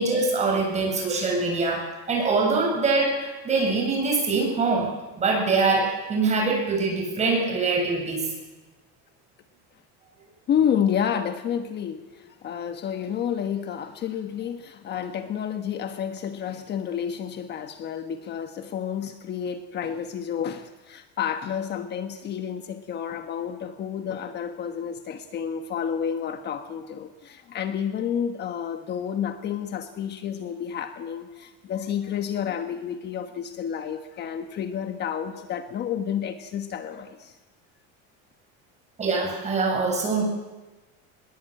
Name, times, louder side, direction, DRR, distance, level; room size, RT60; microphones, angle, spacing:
voice 1, 0.0-4.9 5.2-8.3 39.0-40.2, right 3 dB, 25° right, 1 dB, 7.7 m, -24 dB
voice 2, 10.5-37.3, left 8 dB, 35° left, 8 dB, 1.3 m, -30 dB
22.0 x 21.5 x 9.0 m, 1.2 s
cardioid pair, 155°, 29 cm